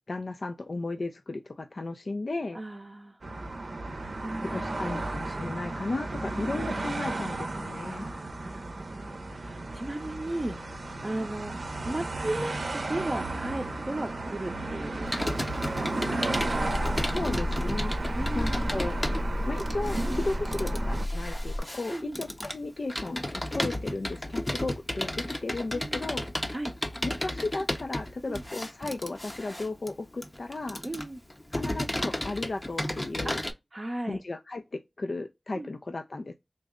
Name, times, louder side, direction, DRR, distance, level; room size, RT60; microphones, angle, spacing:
voice 1, 0.0-2.6 4.5-8.1 17.1-17.9 18.3-19.0 19.5-26.5 27.0-30.8 31.5-33.4 34.1-36.3, left 2 dB, 70° left, 0.4 m, -35 dB
voice 2, 2.5-3.2 4.0-5.0 7.8-15.9 18.2-18.7 21.9-22.2 23.6-23.7 25.7-26.1 26.5-26.7 28.3-28.4 30.8-31.2 33.2-33.4 33.7-34.2 35.5-35.7, right 1 dB, 40° right, 0.5 m, -36 dB
sound 1, 3.2-21.1, right 2 dB, 80° right, 0.6 m, -34 dB
Computer keyboard, 15.1-33.5, left 1 dB, 25° left, 0.6 m, -34 dB
sound 2, 16.3-21.6, left 1 dB, 90° left, 0.9 m, -32 dB
3.8 x 2.0 x 3.5 m
wide cardioid pair, 45°, 0 cm